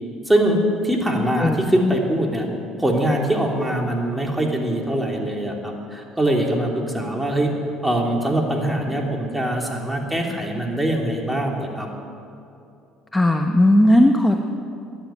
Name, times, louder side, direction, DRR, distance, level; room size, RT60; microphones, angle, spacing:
voice 1, 0.3-2.5 2.8-7.5 7.8-11.9, right 1 dB, 10° right, 0 dB, 3.2 m, -22 dB
voice 2, 13.1-14.4, left 1 dB, 10° left, 4 dB, 1.1 m, -16 dB
15.0 x 10.5 x 9.0 m, 2.6 s
supercardioid pair, 75°, 0 cm